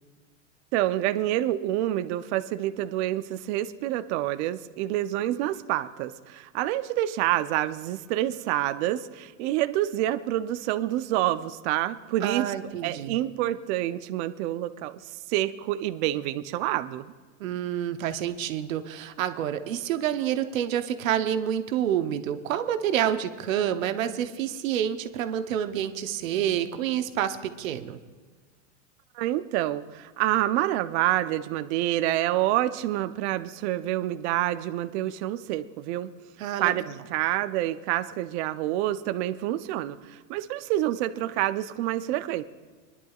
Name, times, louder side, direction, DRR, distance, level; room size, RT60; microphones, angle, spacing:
voice 1, 0.7-12.5 12.8-14.9 15.3-17.1 29.1-36.1 36.6-36.8 37.1-42.4, right 14 dB, 60° right, 10 dB, 0.7 m, -27 dB
voice 2, 12.2-13.2 17.4-28.0 36.4-36.9, right 10 dB, 85° right, 9 dB, 1.0 m, -28 dB
24.0 x 11.0 x 2.4 m, 1.4 s
supercardioid pair, 120°, 39 cm